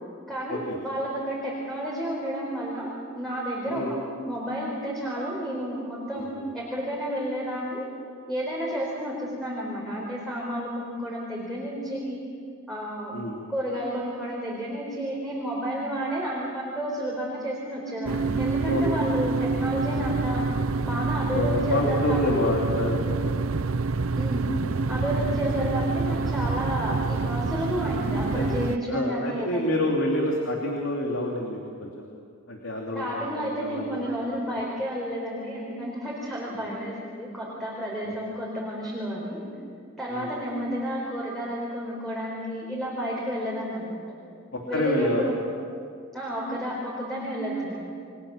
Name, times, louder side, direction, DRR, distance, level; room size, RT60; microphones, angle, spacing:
voice 1, 0.3-7.9 8.3-12.2 12.7-13.1 13.5-20.4 20.8-22.5 24.1-24.5 24.9-29.7 32.9-39.4 40.0-44.0 44.7-45.3 46.1-47.9, equal, ahead, -5 dB, 4.4 m, -31 dB
voice 2, 6.1-6.5 13.1-13.4 18.6-19.3 21.3-23.7 28.3-28.4 28.9-32.1 32.5-34.0 34.5-34.6 36.5-36.6 40.1-40.3 44.5-45.3, left 1 dB, 70° left, -1 dB, 3.0 m, -28 dB
sound 1, 18.0-28.8, right 3 dB, 90° right, 0.7 m, -27 dB
30.0 x 22.5 x 7.3 m, 2.4 s
head